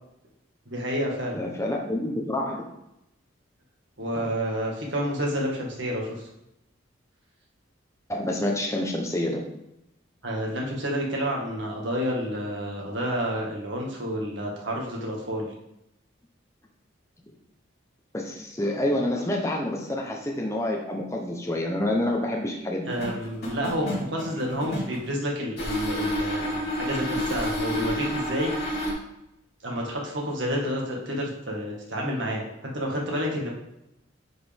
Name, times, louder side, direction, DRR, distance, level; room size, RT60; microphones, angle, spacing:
voice 1, 0.7-1.4 4.0-6.2 10.2-15.5 22.9-28.5 29.6-33.5, equal, 65° right, -1 dB, 1.8 m, -29 dB
voice 2, 1.3-2.7 8.1-9.4 18.1-22.9, left 1 dB, 15° left, 0 dB, 0.8 m, -28 dB
sound 1, 22.9-25.1 25.6-28.9, left 1 dB, 55° left, 3.1 m, -29 dB
9.7 x 5.0 x 3.5 m, 0.85 s
head